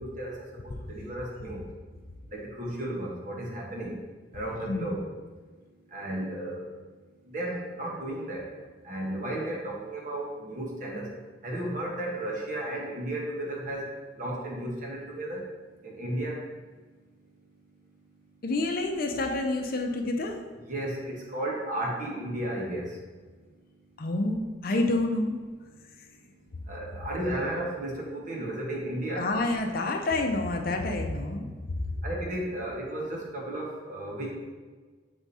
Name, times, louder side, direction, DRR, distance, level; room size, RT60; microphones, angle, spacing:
voice 1, 0.0-1.7 2.3-4.0 4.3-5.1 5.9-6.7 7.2-8.5 8.8-11.2 11.4-15.5 15.8-16.4 20.5-23.0 26.7-29.3 32.0-34.3, right 1 dB, 45° right, -2 dB, 1.3 m, -34 dB
voice 2, 18.4-20.4 24.0-25.4 29.2-31.8, left 2 dB, 55° left, 4 dB, 0.6 m, -28 dB
6.8 x 3.5 x 4.1 m, 1.4 s
head